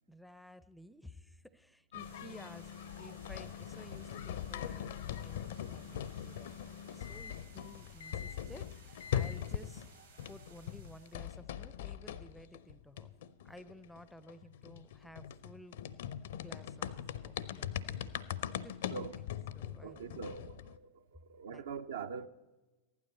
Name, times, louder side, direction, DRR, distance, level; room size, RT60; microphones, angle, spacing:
voice 1, 0.1-9.9 10.2-13.1 13.4-15.8 16.3-16.9 17.2-17.9 18.6-18.9 19.5-20.6 21.5-21.6, equal, ahead, 0.5 m, -55 dB
sound 1, 1.9-9.9 10.2-20.8, left 10 dB, 55° left, 0.5 m, -41 dB
voice 2, 2.0-2.3 18.9-19.2 19.6-22.3, right 6 dB, 60° right, 0.5 m, -44 dB
sound 2, 2.0-11.4, right 4 dB, 80° right, 3.6 m, -61 dB
15.5 x 11.5 x 4.3 m
figure-of-eight pair, 90°, 0 cm